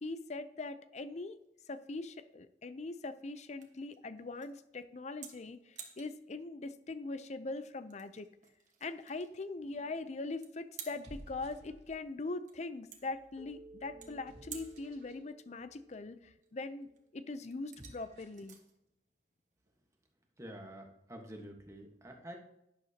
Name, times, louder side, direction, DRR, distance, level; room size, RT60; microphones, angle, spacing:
voice 1, 0.0-1.4 1.7-8.3 8.8-16.9 17.1-18.6, left 3 dB, 40° left, 13 dB, 0.5 m, -42 dB
sound 1, 1.3-20.1, right 8 dB, 45° right, 1.4 m, -56 dB
sound 2, 9.6-10.0 10.8-12.2 12.9-15.2 17.6-18.5, equal, 70° right, 2.2 m, -56 dB
Keyboard (musical), 13.4-16.6, right 2 dB, ahead, 1.8 m, -58 dB
voice 2, 20.4-22.4, right 1 dB, 15° right, 2 dB, 1.3 m, -48 dB
11.5 x 10.5 x 2.8 m, 0.84 s
head